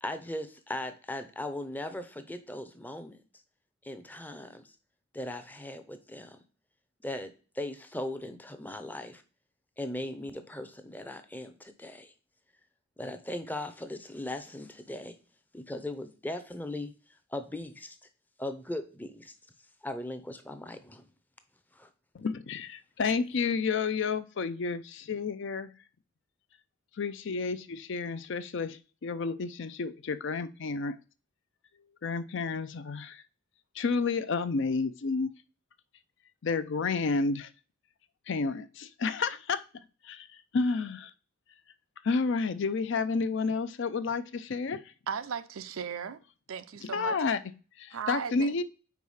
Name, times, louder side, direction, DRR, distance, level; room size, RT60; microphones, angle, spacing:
voice 1, 0.0-3.2 3.8-4.7 5.1-6.4 7.0-9.2 9.8-12.1 13.0-15.2 15.5-16.9 17.3-18.0 18.4-19.3 19.8-21.0 21.7-21.9, left 1 dB, 10° left, 0.6 m, -38 dB
voice 2, 22.1-25.7 27.0-31.0 32.0-33.2 33.7-35.3 36.4-37.5 38.3-39.6 40.0-40.3 40.5-41.1 42.0-44.8 46.8-47.4 47.8-48.6, left 4 dB, 60° left, 0.5 m, -30 dB
voice 3, 45.1-46.2 46.5-47.2 47.9-48.5, right 7 dB, 90° right, 0.6 m, -36 dB
4.8 x 4.7 x 5.4 m
head